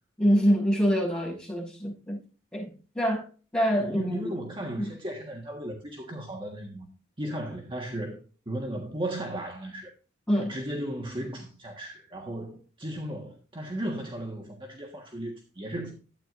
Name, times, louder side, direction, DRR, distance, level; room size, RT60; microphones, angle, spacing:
voice 1, 0.2-2.2 2.5-2.7 2.9-3.3 3.5-4.3 4.8-4.9 10.3-10.5, equal, 5° left, 6.2 m, -25 dB
voice 2, 3.8-6.9 7.2-8.2 8.4-9.9 10.3-16.0, right 1 dB, 25° right, 1.5 m, -35 dB
12.5 x 9.1 x 2.6 m
head